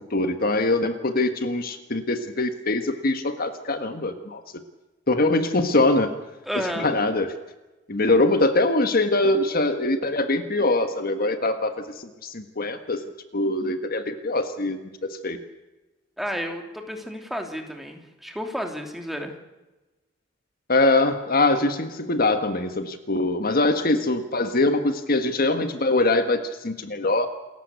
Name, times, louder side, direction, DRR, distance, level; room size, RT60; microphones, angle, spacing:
voice 1, 0.1-4.4 5.1-6.1 6.8-7.3 7.9-13.0 13.3-15.4 20.7-27.3, left 2 dB, 50° left, 8 dB, 1.5 m, -23 dB
voice 2, 6.4-6.9 16.2-19.3, equal, ahead, 3 dB, 3.0 m, -31 dB
28.5 x 14.5 x 8.2 m, 1.1 s
head